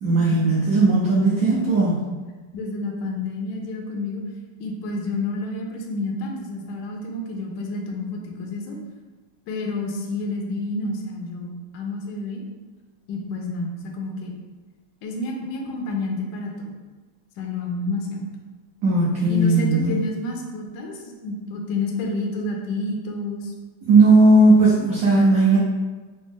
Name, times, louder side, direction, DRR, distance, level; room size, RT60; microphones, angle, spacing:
voice 1, 0.0-2.0 18.8-20.0 23.9-25.6, right 2 dB, 65° right, -6 dB, 0.9 m, -17 dB
voice 2, 2.5-4.2 4.6-8.8 9.5-12.4 13.1-14.3 15.0-16.7 17.4-18.2 19.3-23.5, left 2 dB, 70° left, 0 dB, 0.9 m, -29 dB
5.0 x 2.0 x 3.5 m, 1.3 s
omnidirectional pair, 2.3 m